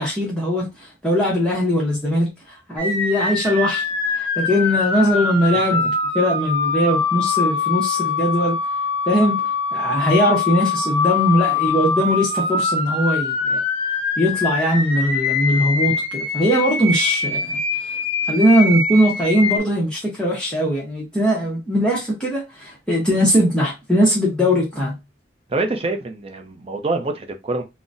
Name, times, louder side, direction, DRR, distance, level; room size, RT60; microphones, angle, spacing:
voice 1, 0.0-8.6 9.1-9.4 9.7-13.6 14.2-17.9 18.3-25.0, equal, 5° left, 0.7 m, -20 dB
sound 1, 2.8-19.6, left 4 dB, 35° left, 1.0 m, -23 dB
voice 2, 25.5-27.6, right 2 dB, 35° right, 0.5 m, -25 dB
3.8 x 2.0 x 2.5 m
head